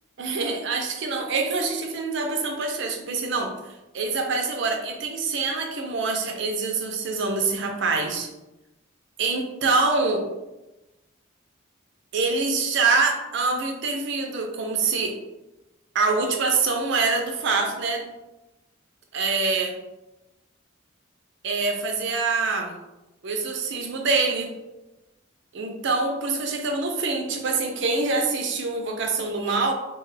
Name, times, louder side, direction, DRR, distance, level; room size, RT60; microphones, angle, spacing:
voice 1, 0.2-3.5 3.9-8.3 9.2-10.3 12.1-15.2 15.9-18.1 19.1-19.7 21.4-22.7 23.2-24.5 25.5-29.7, right 4 dB, 60° right, 3 dB, 0.5 m, -25 dB
2.8 x 2.3 x 3.2 m, 1.0 s
head